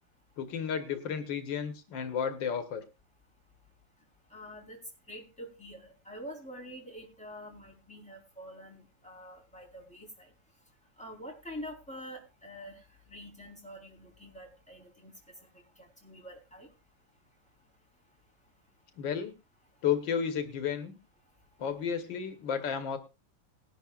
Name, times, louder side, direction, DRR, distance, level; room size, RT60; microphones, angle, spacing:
voice 1, 0.4-2.8 19.0-19.3 19.8-21.0 21.6-23.0, left 7 dB, 80° left, 8 dB, 1.8 m, -32 dB
voice 2, 4.3-4.8 5.1-10.3 11.0-12.8 13.1-15.1 15.8-16.7, equal, 5° left, -1 dB, 3.7 m, -46 dB
19.5 x 11.5 x 2.4 m, 0.28 s
omnidirectional pair, 2.0 m